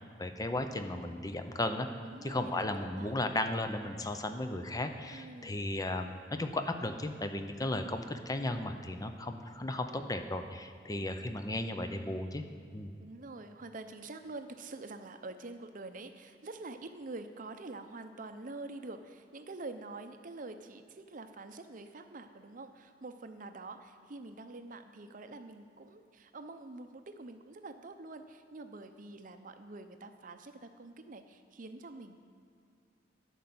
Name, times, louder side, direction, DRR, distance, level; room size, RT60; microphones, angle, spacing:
voice 1, 0.0-1.9 2.2-12.4 12.7-12.9, left 1 dB, 20° left, 7 dB, 0.6 m, -35 dB
voice 2, 2.0-3.2 5.1-5.6 13.0-32.2, right 2 dB, 50° right, 8 dB, 0.7 m, -46 dB
11.0 x 5.5 x 7.8 m, 2.4 s
head